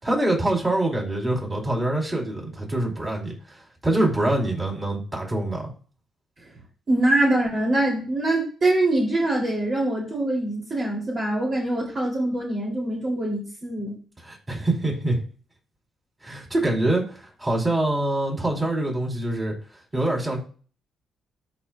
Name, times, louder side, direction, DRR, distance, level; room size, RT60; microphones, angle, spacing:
voice 1, 0.0-5.7 14.2-15.2 16.2-19.6 19.9-20.4, right 1 dB, 20° right, -1 dB, 4.5 m, -25 dB
voice 2, 6.9-14.0, right 1 dB, 45° right, -3 dB, 3.5 m, -24 dB
13.0 x 5.1 x 2.5 m, 0.40 s
cardioid pair, 90°, 0 cm